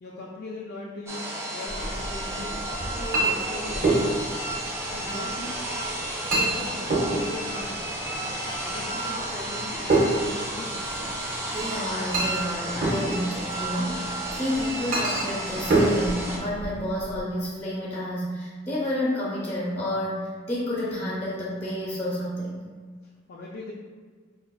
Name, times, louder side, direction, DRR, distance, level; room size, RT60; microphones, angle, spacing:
voice 1, 0.0-2.6 2.9-4.3 4.9-5.6 6.2-8.4 8.7-10.8 23.3-23.7, left 2 dB, 55° left, -4 dB, 0.4 m, -39 dB
sound 1, 1.1-16.4, right 1 dB, 15° right, 0.4 m, -33 dB
Chink clink, 1.7-17.2, right 2 dB, 45° right, 0.7 m, -29 dB
voice 2, 11.5-22.6, left 1 dB, 15° left, -6 dB, 0.8 m, -30 dB
4.9 x 2.4 x 2.3 m, 1.5 s
head